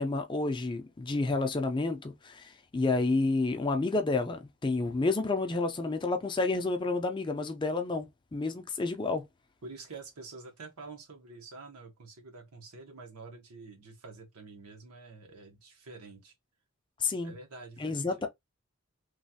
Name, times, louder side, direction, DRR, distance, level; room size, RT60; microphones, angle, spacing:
voice 1, 0.0-9.2 17.0-17.3 17.8-18.3, left 3 dB, 20° left, 0.4 m, -30 dB
voice 2, 9.6-16.3 17.2-18.3, right 3 dB, 85° right, 1.0 m, -48 dB
3.1 x 2.3 x 2.7 m
head